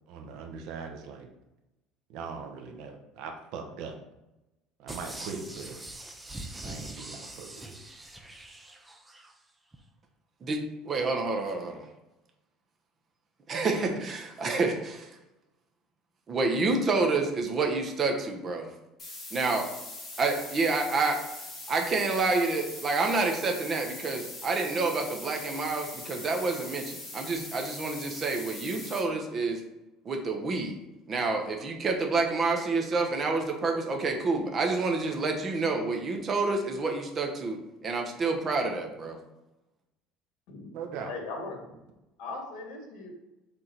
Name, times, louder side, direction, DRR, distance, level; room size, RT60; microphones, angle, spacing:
voice 1, 0.1-1.3 2.1-4.0 4.8-5.8 6.6-7.8 40.7-41.1, right 5 dB, 70° right, 3 dB, 1.1 m, -40 dB
sound 1, 4.9-9.3 9.7-9.8, right 1 dB, 10° right, 0.7 m, -43 dB
voice 2, 10.4-11.9 13.5-15.2 16.3-18.6 19.3-19.7 20.2-21.2 21.7-29.6 30.0-30.8 31.1-37.6 37.8-39.2, right 3 dB, 30° right, 3 dB, 1.0 m, -28 dB
sound 2, 19.0-29.0, left 2 dB, 25° left, 2.2 m, -42 dB
voice 3, 41.0-41.8 42.2-43.1, left 3 dB, 70° left, 2 dB, 1.9 m, -39 dB
6.6 x 3.6 x 4.5 m, 0.96 s
cardioid pair, 140°, 0 cm